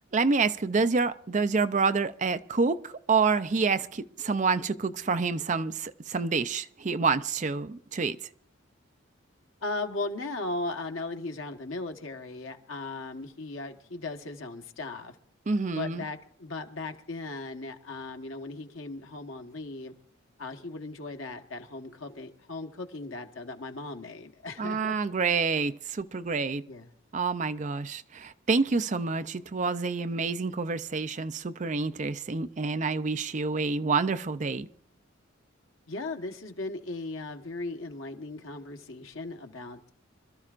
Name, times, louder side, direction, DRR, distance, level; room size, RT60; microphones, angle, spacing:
voice 1, 0.1-8.2 15.5-16.1 24.6-26.7 27.1-34.7, right 4 dB, 40° right, 0.5 m, -28 dB
voice 2, 9.6-15.2 15.7-19.9 20.4-25.0 26.7-26.9 35.9-39.9, left 2 dB, 90° left, 1.4 m, -37 dB
26.0 x 13.5 x 2.5 m
head